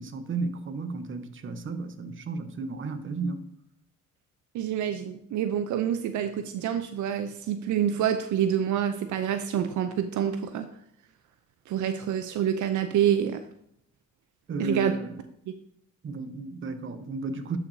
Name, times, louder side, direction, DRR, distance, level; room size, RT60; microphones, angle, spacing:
voice 1, 0.0-3.5 14.5-15.1 16.0-17.6, right 3 dB, 40° right, 0.9 m, -33 dB
voice 2, 4.5-10.7 11.7-13.4 14.6-14.9, right 9 dB, 75° right, 0.6 m, -27 dB
11.0 x 5.9 x 2.7 m
cardioid pair, 90°, 30 cm